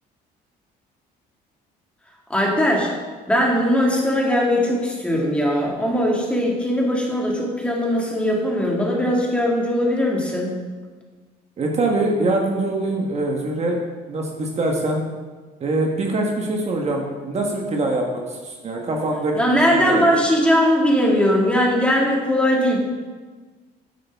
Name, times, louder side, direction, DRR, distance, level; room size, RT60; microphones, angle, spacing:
voice 1, 2.3-2.9 3.3-10.6 19.3-22.8, equal, 5° left, -2 dB, 2.0 m, -20 dB
voice 2, 11.6-13.8 14.1-15.0 15.6-20.0, right 2 dB, 40° right, 1 dB, 1.3 m, -23 dB
9.5 x 8.9 x 3.5 m, 1.4 s
cardioid pair, 110°, 17 cm